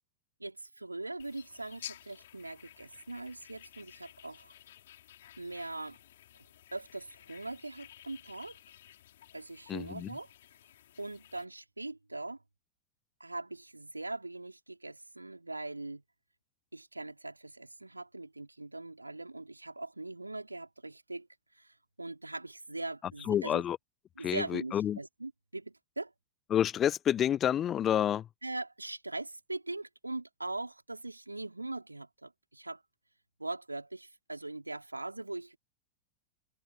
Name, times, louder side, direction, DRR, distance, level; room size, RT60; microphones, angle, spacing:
voice 1, 0.4-4.5 5.4-6.0 6.7-8.6 9.3-10.3 11.0-12.4 13.2-16.0 16.7-21.3 21.5-23.6 24.1-26.1 28.4-32.8 33.4-35.6, right 2 dB, 85° right, 4.7 m, -41 dB
sound 1, 1.2-11.5, left 12 dB, 60° left, 6.9 m, -53 dB
voice 2, 9.7-10.1 23.3-23.8 24.2-25.0 26.5-28.2, left 10 dB, 25° left, 0.4 m, -29 dB
figure-of-eight pair, 90°, 0 cm